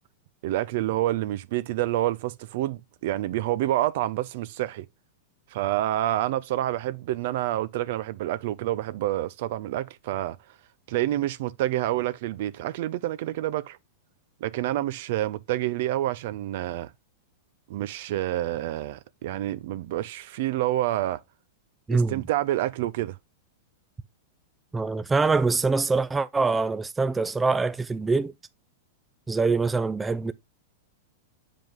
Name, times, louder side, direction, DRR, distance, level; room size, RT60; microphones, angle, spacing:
voice 1, 0.4-4.9 5.5-10.4 10.9-13.8 14.4-16.9 17.7-21.2 21.9-23.2, right 14 dB, 60° right, 0.7 m, -28 dB
voice 2, 24.7-28.3 29.3-30.3, right 4 dB, 15° right, 0.4 m, -24 dB
7.7 x 5.1 x 3.6 m
hypercardioid pair, 115°, 0 cm